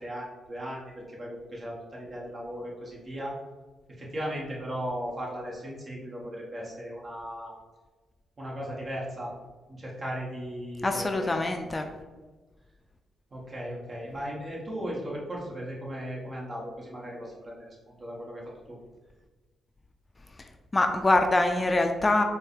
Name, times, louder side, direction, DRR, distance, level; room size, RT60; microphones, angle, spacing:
voice 1, 0.0-3.4 4.0-7.5 8.4-9.3 9.7-11.4 13.3-18.8, equal, 40° right, -4 dB, 1.4 m, -37 dB
voice 2, 10.8-11.9 20.7-22.2, left 2 dB, 25° left, 5 dB, 0.4 m, -24 dB
4.4 x 2.3 x 3.2 m, 1.3 s
hypercardioid pair, 45°, 0 cm